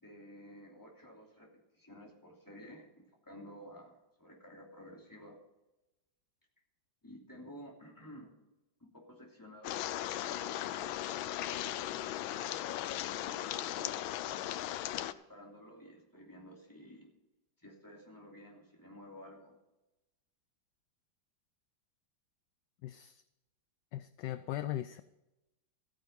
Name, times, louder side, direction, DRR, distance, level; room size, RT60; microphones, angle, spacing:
voice 1, 0.0-5.4 7.0-8.3 8.8-10.0 10.2-11.0 11.7-14.1 14.4-17.1 17.6-19.6, equal, 10° left, -2 dB, 2.9 m, -53 dB
sound 1, 9.6-15.1, left 13 dB, 90° left, 1.4 m, -37 dB
voice 2, 22.8-23.2 23.9-25.0, left 13 dB, 75° left, 12 dB, 1.1 m, -39 dB
14.5 x 9.4 x 5.4 m, 0.97 s
omnidirectional pair, 2.1 m